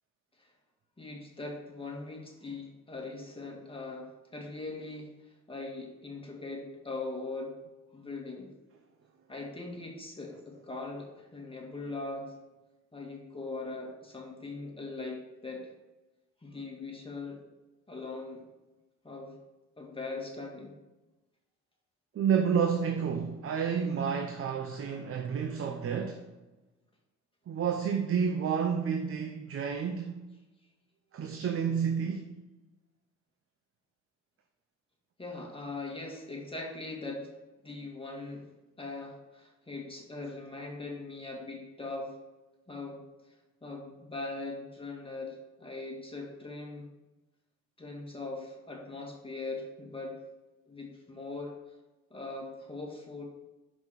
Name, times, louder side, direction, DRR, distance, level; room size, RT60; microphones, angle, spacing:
voice 1, 1.0-7.5 7.9-8.5 9.3-12.3 12.9-15.7 16.4-17.4 17.9-18.4 19.0-19.4 19.8-20.7 35.2-37.3 37.6-38.5 38.8-42.2 42.7-43.0 43.6-46.9 47.8-50.2 50.7-51.5 52.1-53.2, left 3 dB, 20° left, 1.9 m, -40 dB
voice 2, 22.2-26.2 27.5-30.2 31.1-32.3, right 7 dB, 45° right, 0.7 m, -30 dB
6.2 x 5.3 x 4.8 m
cardioid pair, 90°, 30 cm